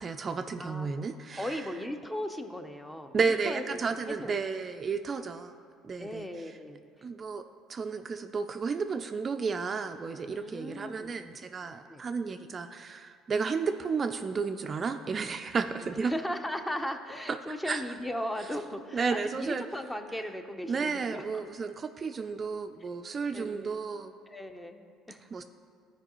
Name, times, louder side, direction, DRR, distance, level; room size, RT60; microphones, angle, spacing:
voice 1, 0.0-1.6 3.1-5.5 5.8-6.3 7.0-7.4 7.7-16.1 17.7-17.8 18.9-19.6 20.7-24.1 25.3-25.4, right 5 dB, 35° right, 7 dB, 0.3 m, -32 dB
voice 2, 1.4-3.8 4.1-4.4 6.0-6.8 10.4-11.1 11.9-12.0 16.0-21.5 23.3-23.7 24.3-25.3, left 1 dB, 10° left, 7 dB, 0.6 m, -37 dB
13.0 x 4.7 x 3.0 m, 2.3 s
supercardioid pair, 95°, 0 cm